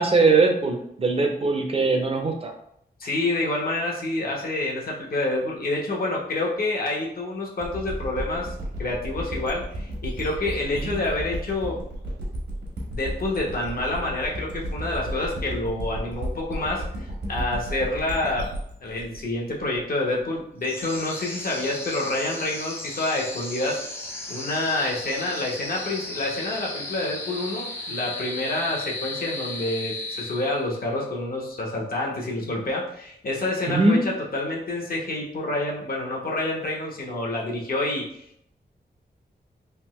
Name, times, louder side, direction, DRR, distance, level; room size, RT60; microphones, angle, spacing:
voice 1, 0.0-2.5 10.8-11.0 33.7-34.0, right 3 dB, 35° right, 3 dB, 0.5 m, -21 dB
voice 2, 3.0-11.8 12.9-18.5 18.8-23.8 24.3-38.2, left 2 dB, 55° left, -2 dB, 0.9 m, -28 dB
sound 1, 7.6-20.2, equal, 75° right, 1.1 m, -33 dB
sound 2, 20.6-30.9, left 2 dB, 15° left, 0.6 m, -35 dB
3.5 x 2.7 x 3.1 m, 0.73 s
wide cardioid pair, 155°, 18 cm